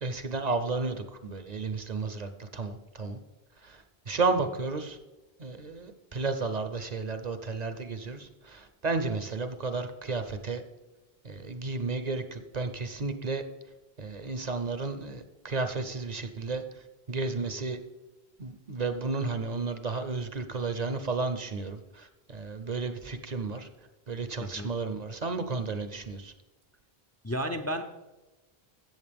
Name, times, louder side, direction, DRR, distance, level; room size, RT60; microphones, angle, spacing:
voice 1, 0.0-1.0 1.2-3.2 3.6-3.8 4.1-5.0 5.4-10.6 11.2-13.4 14.0-16.6 17.1-17.8 18.4-23.7 24.1-26.3, right 3 dB, 45° right, 9 dB, 0.7 m, -32 dB
voice 2, 24.4-24.7 27.2-27.8, equal, 20° left, 7 dB, 0.4 m, -32 dB
14.0 x 8.2 x 3.5 m, 1.1 s
omnidirectional pair, 1.0 m